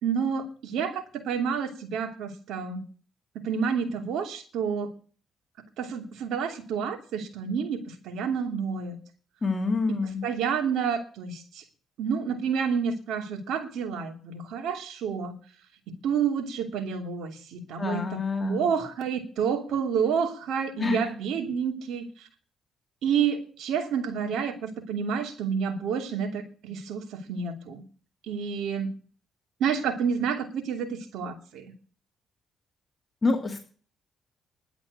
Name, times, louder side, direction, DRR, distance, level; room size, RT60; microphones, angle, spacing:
voice 1, 0.0-2.8 3.4-4.9 5.8-9.0 10.2-11.6 12.0-15.3 16.0-22.3 23.0-27.8 28.3-28.9 29.6-31.7, right 6 dB, 80° right, 4 dB, 2.8 m, -29 dB
voice 2, 9.4-10.2 17.8-18.7 20.8-21.0 33.2-33.6, left 3 dB, 25° left, 3 dB, 2.2 m, -27 dB
11.5 x 8.1 x 8.4 m, 0.41 s
cardioid pair, 90°, 0 cm